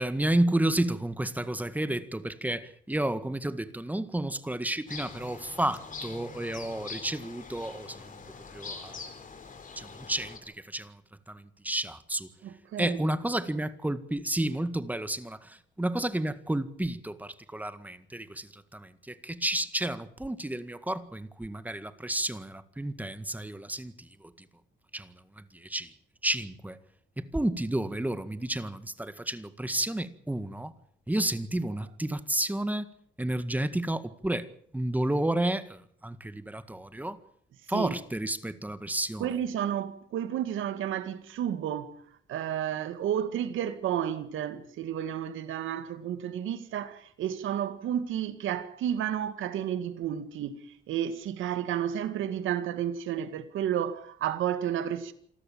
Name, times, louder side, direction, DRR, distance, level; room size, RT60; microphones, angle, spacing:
voice 1, 0.0-8.1 8.5-9.1 9.8-11.0 11.3-12.3 12.8-24.3 24.9-25.9 26.2-26.8 27.2-30.7 31.1-32.9 33.2-34.5 34.7-37.2 37.7-39.3, right 1 dB, 10° right, 1.8 m, -31 dB
sound 1, 4.9-10.4, left 4 dB, 40° left, 4.8 m, -43 dB
voice 2, 12.4-13.0 37.7-37.9 39.2-42.0 42.3-55.1, right 10 dB, 80° right, 2.0 m, -31 dB
27.5 x 13.5 x 8.8 m
cardioid pair, 90°, 20 cm